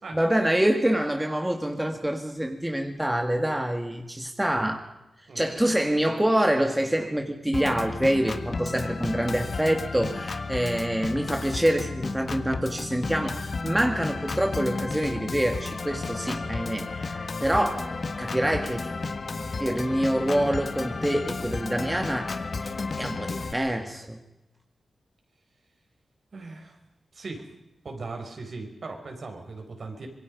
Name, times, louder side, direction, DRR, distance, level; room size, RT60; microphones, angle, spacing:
voice 1, 0.1-4.9 5.4-18.9 19.6-22.4 22.6-22.7 23.0-24.2, right 1 dB, 10° right, 4 dB, 2.1 m, -26 dB
Organ, 7.5-23.5, left 3 dB, 50° left, 1.6 m, -33 dB
voice 2, 26.3-26.8 27.1-27.5 27.8-30.1, right 3 dB, 60° right, 3 dB, 5.3 m, -38 dB
26.0 x 22.5 x 5.4 m, 0.94 s
wide cardioid pair, 95°, 0 cm